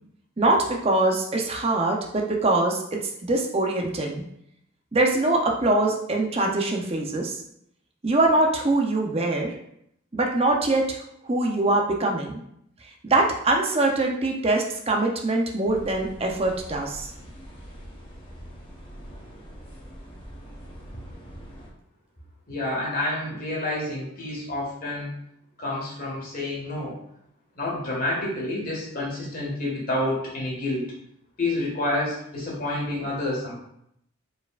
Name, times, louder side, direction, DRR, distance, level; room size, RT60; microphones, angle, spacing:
voice 1, 0.4-4.2 4.9-7.4 8.0-9.5 10.1-11.0 11.2-12.4 13.0-17.1, right 2 dB, 30° right, 1 dB, 0.6 m, -23 dB
sound 1, 15.6-21.7, equal, 25° left, 0.9 m, -43 dB
voice 2, 22.5-25.1 25.6-27.0 27.6-30.9 31.4-33.5, left 1 dB, 45° left, -4 dB, 1.6 m, -29 dB
4.6 x 4.5 x 2.4 m, 0.74 s
head